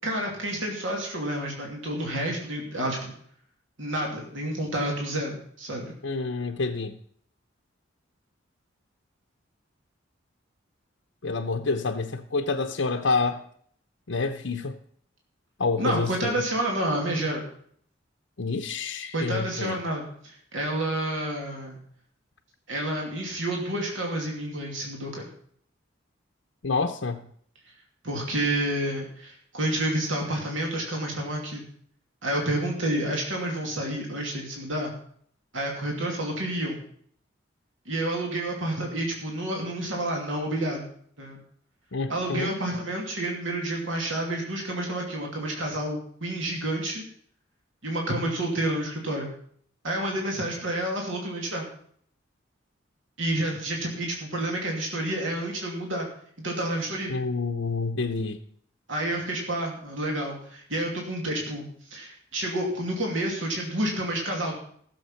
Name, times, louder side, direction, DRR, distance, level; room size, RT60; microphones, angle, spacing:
voice 1, 0.0-3.1 3.8-5.9 15.8-17.4 19.1-21.8 22.7-25.3 28.0-31.6 32.2-34.9 35.5-36.8 37.9-40.8 41.2-41.4 42.1-47.0 47.8-49.3 49.8-51.6 53.2-56.1 56.4-57.1 58.9-64.6, right 1 dB, 75° right, 2.8 m, -29 dB
voice 2, 6.0-7.0 11.2-13.4 14.1-14.8 15.6-16.4 18.4-19.8 26.6-27.3 41.9-42.5 57.1-58.4, left 4 dB, 70° left, 0.8 m, -28 dB
16.0 x 7.3 x 5.7 m
head